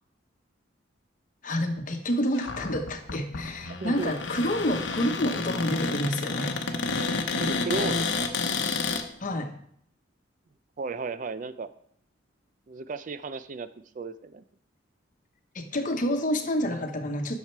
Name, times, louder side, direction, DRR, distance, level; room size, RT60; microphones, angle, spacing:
voice 1, 1.4-6.6 9.2-9.5 15.5-17.4, equal, 40° left, 6 dB, 1.0 m, -28 dB
Cupboard open or close, 2.3-9.0, left 4 dB, 70° left, 0.9 m, -30 dB
voice 2, 3.8-4.1 7.4-8.3 10.8-11.7 12.7-13.7 14.0-14.4, right 4 dB, 40° right, 13 dB, 0.4 m, -34 dB
10.5 x 6.6 x 4.6 m, 0.67 s
head